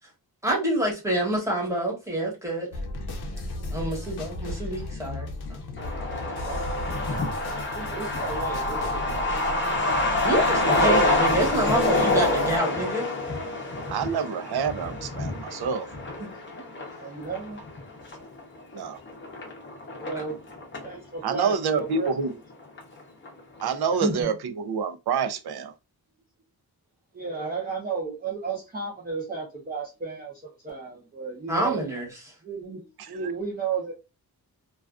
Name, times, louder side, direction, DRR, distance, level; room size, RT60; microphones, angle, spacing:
voice 1, 0.4-2.7 3.7-5.9 10.2-13.0 16.2-16.3 24.0-24.3 27.4-27.5 31.5-32.0, right 1 dB, 10° right, 0.9 m, -27 dB
sound 1, 2.7-12.6, left 2 dB, 80° left, 0.6 m, -36 dB
Truck, 5.8-21.0 21.3-21.4 21.6-22.5 22.8-22.9 23.3-23.6, left 2 dB, 30° left, 0.6 m, -27 dB
voice 2, 6.0-7.3 7.7-9.4 17.0-17.6 20.0-20.4 20.8-22.4 27.1-31.8 32.4-33.9, right 5 dB, 25° right, 0.5 m, -34 dB
voice 3, 13.9-15.9 18.7-19.0 21.2-22.3 23.6-25.7, right 6 dB, 75° right, 0.5 m, -27 dB
2.3 x 2.3 x 2.3 m
wide cardioid pair, 170°, 38 cm